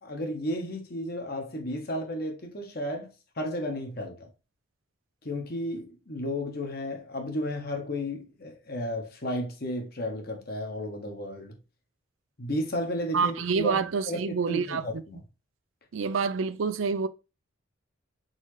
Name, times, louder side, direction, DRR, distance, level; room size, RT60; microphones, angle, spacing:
voice 1, 0.0-4.3 5.2-11.6 12.4-15.2, left 1 dB, 50° left, 1.1 m, -33 dB
voice 2, 13.1-15.0 15.9-17.1, right 5 dB, 80° right, 0.5 m, -27 dB
4.0 x 3.8 x 3.1 m
head